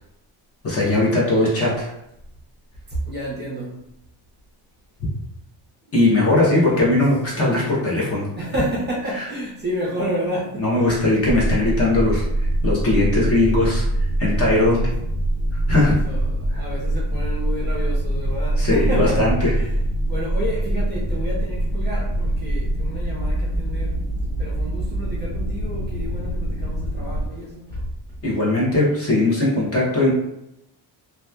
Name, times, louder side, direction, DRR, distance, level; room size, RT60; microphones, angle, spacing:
voice 1, 0.6-1.9 5.9-8.3 9.1-9.2 10.6-12.2 12.6-13.8 14.2-14.8 15.7-16.0 18.6-19.5 28.2-30.1, left 2 dB, 30° left, -5 dB, 0.7 m, -19 dB
voice 2, 2.9-3.8 6.0-7.0 7.3-7.7 8.3-10.9 15.8-19.7 20.1-24.0 24.4-27.9, equal, 25° right, -6 dB, 0.7 m, -30 dB
sound 1, 11.3-27.3, right 1 dB, 80° left, 1.1 m, -24 dB
2.8 x 2.2 x 2.2 m, 0.83 s
cardioid pair, 170°, 45 cm